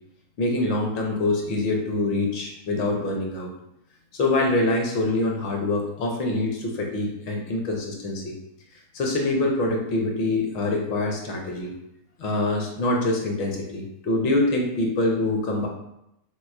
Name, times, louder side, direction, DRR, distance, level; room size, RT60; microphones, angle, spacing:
voice 1, 0.4-3.5 4.1-8.3 8.9-11.7 12.2-15.7, left 2 dB, 45° left, 1 dB, 0.6 m, -25 dB
4.0 x 2.3 x 2.4 m, 0.82 s
figure-of-eight pair, 90°, 0 cm